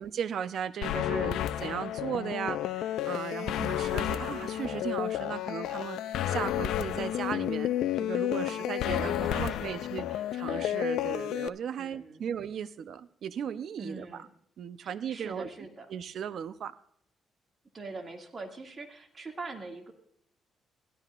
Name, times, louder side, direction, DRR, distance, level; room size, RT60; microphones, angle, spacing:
voice 1, 0.0-14.3 14.6-15.5 15.9-16.8, right 8 dB, 65° right, 13 dB, 0.7 m, -36 dB
sound 1, 0.8-11.5, left 12 dB, 85° left, 0.4 m, -31 dB
voice 2, 8.4-9.8 11.8-12.3 13.8-14.3 14.8-15.9 17.7-19.9, right 3 dB, 35° right, 3 dB, 2.2 m, -42 dB
16.5 x 12.5 x 2.5 m, 0.67 s
cardioid pair, 90°, 0 cm